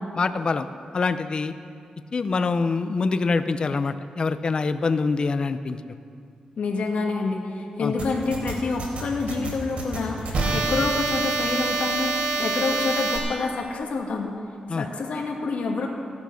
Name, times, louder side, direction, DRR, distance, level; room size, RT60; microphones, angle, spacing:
voice 1, 0.2-0.7 0.9-1.5 2.1-5.8 7.8-7.9 14.7-14.9, left 4 dB, 40° left, 10 dB, 0.6 m, -25 dB
voice 2, 6.6-14.3 14.8-15.9, left 4 dB, 75° left, 0 dB, 2.2 m, -27 dB
sound 1, 8.0-13.2, right 3 dB, 70° right, 3.8 m, -26 dB
16.5 x 11.5 x 6.4 m, 2.3 s
wide cardioid pair, 145°, 2 cm